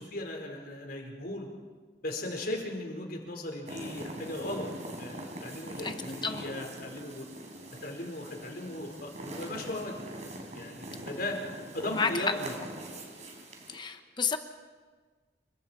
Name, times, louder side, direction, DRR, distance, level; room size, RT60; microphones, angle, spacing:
voice 1, 0.0-1.5 2.0-4.7 5.0-7.3 7.8-10.0 10.5-11.4 11.7-12.6, left 1 dB, 55° left, 2 dB, 4.7 m, -37 dB
sound 1, 3.7-13.8, right 1 dB, 40° right, 4.1 m, -42 dB
voice 2, 13.7-14.4, left 5 dB, 25° left, 7 dB, 1.2 m, -30 dB
28.5 x 24.5 x 4.6 m, 1.4 s
head